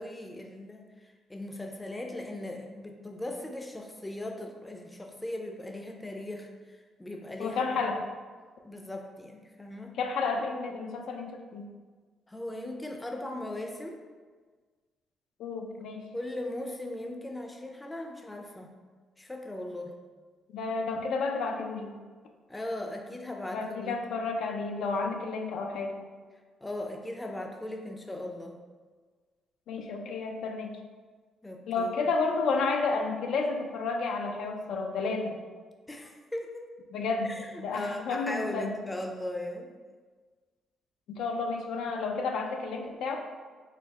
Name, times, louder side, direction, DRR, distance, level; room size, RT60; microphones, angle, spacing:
voice 1, 0.0-7.8 8.6-10.0 12.3-14.0 16.1-18.7 19.2-20.0 22.5-24.0 26.6-28.6 31.4-31.9 35.9-36.7 37.2-39.7, left 1 dB, 15° left, 3 dB, 0.5 m, -38 dB
voice 2, 7.4-8.1 10.0-11.7 15.4-16.1 20.5-22.0 23.5-26.0 29.7-30.7 31.7-35.4 36.9-38.7 41.1-43.2, left 4 dB, 80° left, 3 dB, 0.4 m, -31 dB
4.2 x 2.1 x 3.5 m, 1.5 s
cardioid pair, 90°, 0 cm